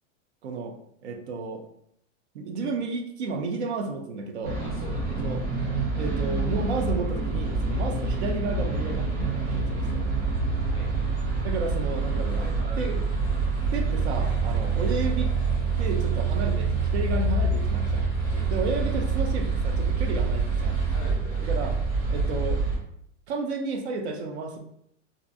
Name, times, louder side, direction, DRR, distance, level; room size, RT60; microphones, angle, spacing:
voice 1, 0.4-0.8 1.0-1.7 2.3-4.6 5.2-5.5 5.8-10.1 11.4-13.1 13.7-15.3 15.8-18.1 18.5-20.8 21.4-21.8 22.1-22.6 23.3-24.6, right 3 dB, 60° right, 3 dB, 0.5 m, -32 dB
sound 1, 4.4-22.8, right 4 dB, 75° right, 1.1 m, -26 dB
voice 2, 4.6-5.2 10.7-11.1 18.3-18.5 20.9-21.7, left 2 dB, 30° left, -3 dB, 0.4 m, -44 dB
2.5 x 2.0 x 2.5 m, 0.72 s
supercardioid pair, 180°, 38 cm